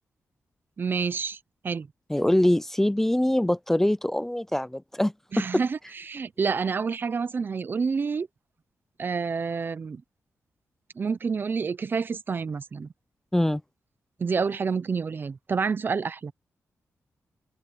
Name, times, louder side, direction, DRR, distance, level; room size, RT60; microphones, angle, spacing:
voice 1, 0.8-1.4 1.6-1.9 5.3-8.3 9.0-10.0 11.0-12.9 14.2-16.3, right 5 dB, 40° right, 0.6 m, -28 dB
voice 2, 2.1-5.1 13.3-13.6, left 1 dB, 5° left, 0.5 m, -23 dB
open air
wide cardioid pair, 135°, 5 cm